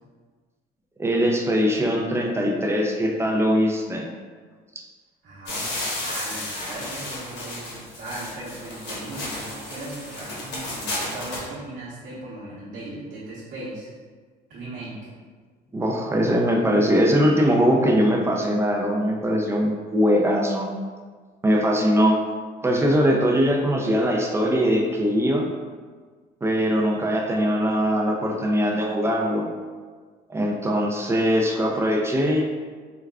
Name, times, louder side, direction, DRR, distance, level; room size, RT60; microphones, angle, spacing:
voice 1, 1.0-4.1 15.7-20.7 21.4-22.2 22.6-25.5 26.4-29.5 30.3-32.4, equal, 15° right, 0 dB, 0.4 m, -21 dB
voice 2, 5.2-13.9 14.5-15.0, right 2 dB, 70° right, -10 dB, 1.0 m, -38 dB
sound 1, 5.5-11.5, left 1 dB, 85° left, 1.1 m, -33 dB
4.7 x 2.2 x 2.3 m, 1.5 s
cardioid pair, 110°, 17 cm